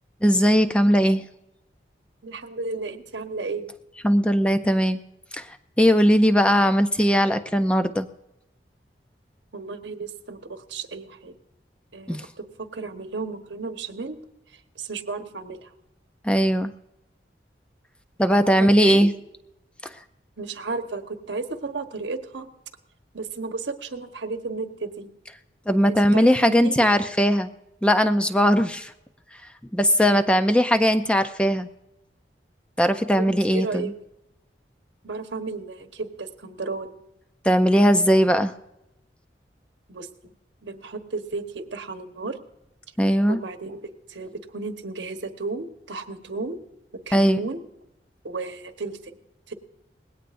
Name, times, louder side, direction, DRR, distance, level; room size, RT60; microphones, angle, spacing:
voice 1, 0.2-1.2 4.0-5.0 5.3-5.5 5.8-8.1 12.1-12.3 16.2-16.7 18.2-19.1 19.8-19.9 25.7-27.5 27.8-28.9 29.7-31.7 32.8-33.9 37.4-38.5 43.0-43.4 47.1-47.4, equal, 5° left, 9 dB, 0.4 m, -19 dB
voice 2, 2.2-3.7 9.5-11.3 11.9-14.2 14.5-15.7 18.3-19.0 20.4-22.5 23.1-25.1 25.9-26.9 30.1-30.4 33.2-33.9 35.0-36.9 39.9-40.3 40.6-42.4 43.3-46.6 46.9-47.6 48.2-49.2 49.5-49.6, right 3 dB, 85° right, 7 dB, 1.2 m, -33 dB
20.0 x 17.0 x 2.6 m, 0.89 s
head